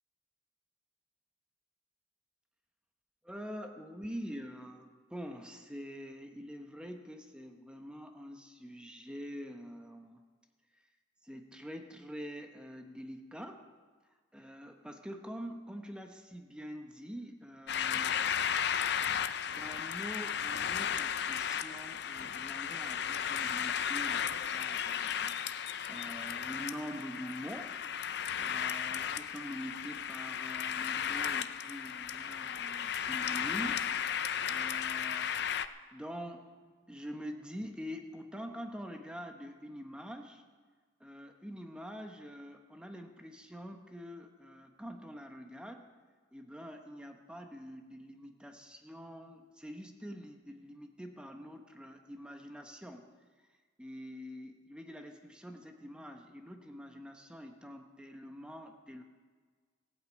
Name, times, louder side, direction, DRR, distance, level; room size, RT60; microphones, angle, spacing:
voice 1, 3.2-10.2 11.2-13.6 14.3-18.2 19.4-27.8 28.4-33.9 34.5-35.5 35.9-40.4 41.0-45.9 46.3-53.1 53.8-59.0, equal, 5° right, 4 dB, 0.9 m, -45 dB
sound 1, 17.7-35.7, left 8 dB, 55° left, 0.5 m, -34 dB
16.0 x 8.5 x 8.5 m, 1.5 s
head